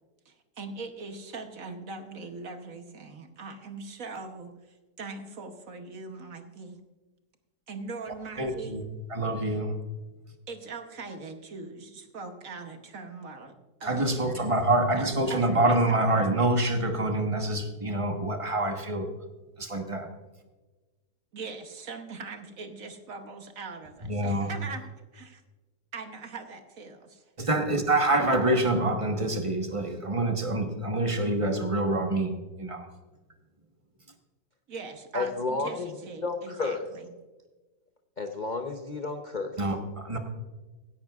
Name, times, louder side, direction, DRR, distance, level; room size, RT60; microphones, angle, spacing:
voice 1, 0.3-6.8 7.7-8.8 10.5-13.5 13.8-14.4 14.9-16.1 21.3-25.4 25.9-27.2 28.3-28.9 34.7-37.1, right 4 dB, 55° right, 7 dB, 1.2 m, -41 dB
voice 2, 8.4-8.8 9.1-9.8 13.8-19.1 19.6-20.1 24.0-24.5 27.4-32.9 39.6-40.2, right 1 dB, 25° right, 5 dB, 0.9 m, -26 dB
voice 3, 35.1-35.9 36.2-36.9 38.2-39.5, left 3 dB, 70° left, 5 dB, 0.4 m, -31 dB
17.0 x 10.5 x 2.4 m, 1.2 s
omnidirectional pair, 2.0 m